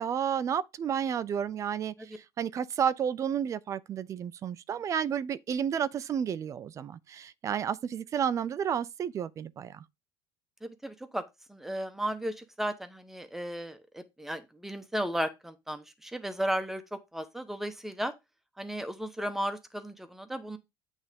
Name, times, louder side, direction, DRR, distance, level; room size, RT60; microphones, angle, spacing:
voice 1, 0.0-9.8, right 8 dB, 30° right, 0.5 m, -31 dB
voice 2, 10.6-11.2 11.5-18.1 18.6-20.6, equal, 5° right, 1.0 m, -35 dB
8.8 x 3.5 x 5.1 m
cardioid pair, 140°, 10 cm